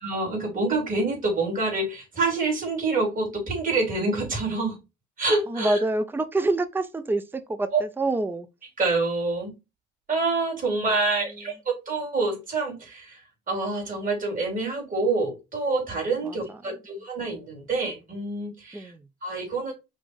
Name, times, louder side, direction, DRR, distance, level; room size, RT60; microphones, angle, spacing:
voice 1, 0.0-4.8 5.2-5.8 7.7-7.8 8.8-9.5 10.1-13.2 13.5-18.9 19.2-19.7, right 3 dB, 45° right, 3.0 m, -27 dB
voice 2, 5.5-8.5 10.7-11.4 16.2-16.6 18.7-19.1, right 2 dB, 10° right, 0.5 m, -28 dB
5.4 x 2.6 x 3.3 m
cardioid pair, 90°, 20 cm